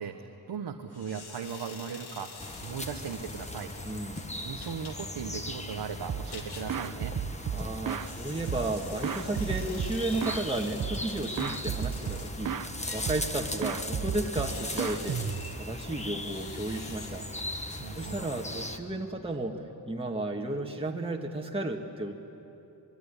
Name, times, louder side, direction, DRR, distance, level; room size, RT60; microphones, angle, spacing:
voice 1, 0.0-4.0 4.4-7.1 17.8-18.3, right 7 dB, 90° right, 3 dB, 1.4 m, -38 dB
sound 1, 0.9-18.4, left 4 dB, 75° left, 2.3 m, -48 dB
sound 2, 2.4-18.8, left 1 dB, 15° left, 1.5 m, -39 dB
voice 2, 3.8-4.2 7.5-17.3 17.6-22.1, right 2 dB, 15° right, 0 dB, 1.8 m, -34 dB
sound 3, 6.1-6.4 6.7-8.1 8.5-10.5 10.8-11.1 11.4-12.7 13.1-13.4 13.6-15.7, right 8 dB, 55° right, 1.0 m, -33 dB
25.5 x 22.5 x 10.0 m, 2.9 s
wide cardioid pair, 105°, 40 cm